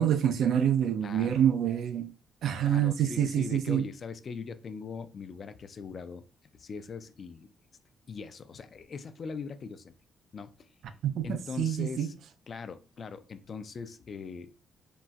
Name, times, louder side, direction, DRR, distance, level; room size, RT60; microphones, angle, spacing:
voice 1, 0.0-2.1 2.4-3.8 11.0-12.1, right 9 dB, 75° right, 0.4 m, -26 dB
voice 2, 1.0-1.4 2.6-6.2 6.6-7.5 8.1-9.9 10.3-10.7 11.2-12.1 12.5-14.5, left 5 dB, 45° left, 0.3 m, -41 dB
4.0 x 2.1 x 2.3 m
cardioid pair, 115°, 0 cm